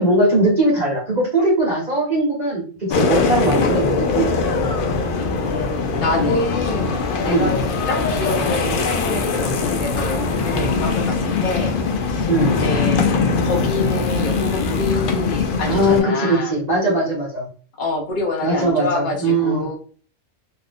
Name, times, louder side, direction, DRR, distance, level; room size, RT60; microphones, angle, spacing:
voice 1, 0.0-4.7 6.1-6.4 7.2-7.6 12.3-12.6 15.7-17.5 18.4-19.7, right 1 dB, 35° right, -5 dB, 0.8 m, -20 dB
sound 1, 2.9-16.0, left 4 dB, 85° left, 0.4 m, -21 dB
voice 2, 5.1-5.7 6.0-7.6 7.9-11.7 12.0-16.5 17.8-19.8, left 2 dB, 40° left, 1 dB, 0.8 m, -27 dB
2.6 x 2.4 x 3.4 m, 0.42 s
omnidirectional pair, 1.5 m